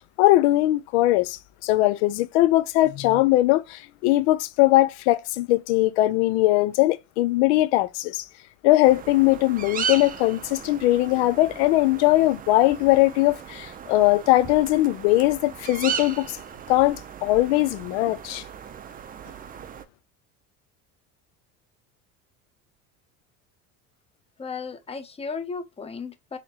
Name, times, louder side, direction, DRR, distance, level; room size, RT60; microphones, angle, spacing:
voice 1, 0.2-8.2 8.6-16.4 16.7-18.4, left 17 dB, 90° left, 0.5 m, -20 dB
sound 1, 8.8-19.8, right 7 dB, 25° right, 0.5 m, -36 dB
voice 2, 24.4-26.4, left 5 dB, 20° left, 0.6 m, -35 dB
4.2 x 3.0 x 2.8 m
supercardioid pair, 115°, 33 cm